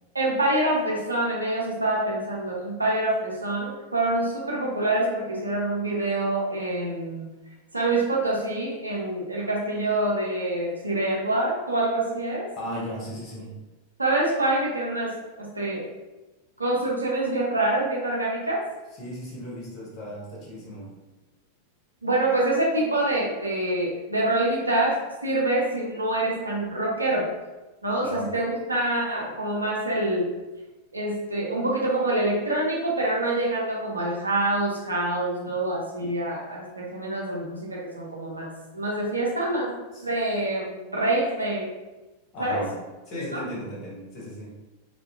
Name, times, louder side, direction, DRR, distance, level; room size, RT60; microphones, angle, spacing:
voice 1, 0.1-7.3 7.7-12.5 14.0-15.9 16.6-18.6 22.0-27.3 27.8-30.3 30.9-39.7 40.0-41.6 42.4-42.6 43.3-43.4, right 2 dB, 80° right, -3 dB, 0.5 m, -26 dB
voice 2, 12.6-13.6 19.0-20.9 28.0-28.4 38.6-38.8 39.9-40.1 42.3-44.5, equal, 35° left, -4 dB, 0.9 m, -37 dB
2.5 x 2.1 x 2.4 m, 1.1 s
figure-of-eight pair, 90°, 0 cm